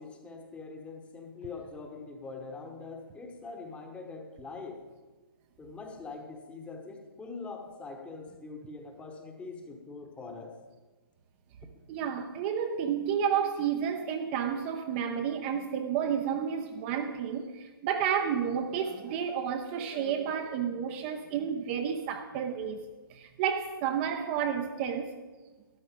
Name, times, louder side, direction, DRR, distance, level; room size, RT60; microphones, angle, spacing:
voice 1, 0.0-4.8 5.6-10.5, left 4 dB, 10° left, 4 dB, 1.1 m, -43 dB
voice 2, 11.9-25.1, right 8 dB, 25° right, 5 dB, 0.7 m, -31 dB
13.0 x 9.7 x 5.1 m, 1.3 s
hypercardioid pair, 150°, 12 cm